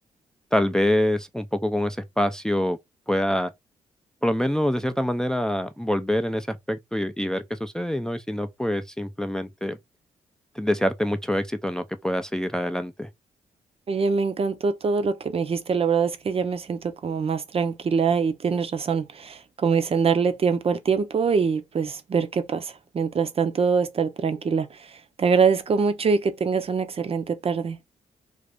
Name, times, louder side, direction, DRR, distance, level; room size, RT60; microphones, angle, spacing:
voice 1, 0.5-2.8 3.1-3.5 4.2-9.8 10.6-13.1, left 1 dB, 5° left, 0.4 m, -25 dB
voice 2, 13.9-24.7 25.2-27.8, right 5 dB, 45° right, 0.6 m, -24 dB
2.6 x 2.5 x 3.4 m
supercardioid pair, 60°, 14 cm